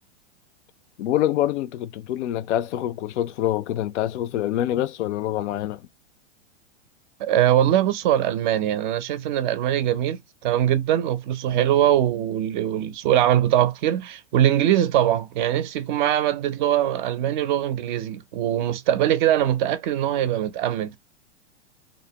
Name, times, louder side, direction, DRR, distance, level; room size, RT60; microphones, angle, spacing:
voice 1, 1.0-5.9 11.5-11.7, left 12 dB, 75° left, 0.5 m, -26 dB
voice 2, 7.2-21.0, right 11 dB, 45° right, 0.4 m, -22 dB
2.5 x 2.0 x 2.7 m
hypercardioid pair, 135°, 35 cm